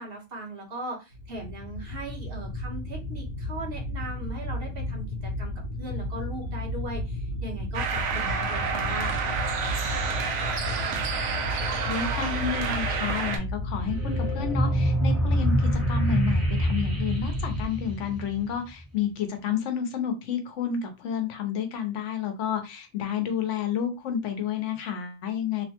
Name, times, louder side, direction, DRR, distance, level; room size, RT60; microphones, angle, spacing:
voice 1, 0.0-9.2, right 2 dB, 55° right, -1 dB, 1.1 m, -38 dB
sound 1, 1.1-17.7, left 1 dB, 55° left, 0.9 m, -33 dB
sound 2, 7.7-13.4, right 6 dB, 80° right, 0.9 m, -29 dB
voice 2, 11.8-25.7, left 8 dB, 85° left, 6 dB, 1.0 m, -30 dB
sound 3, 13.7-18.7, equal, 15° right, 0.8 m, -26 dB
3.0 x 2.1 x 2.8 m, 0.26 s
omnidirectional pair, 1.2 m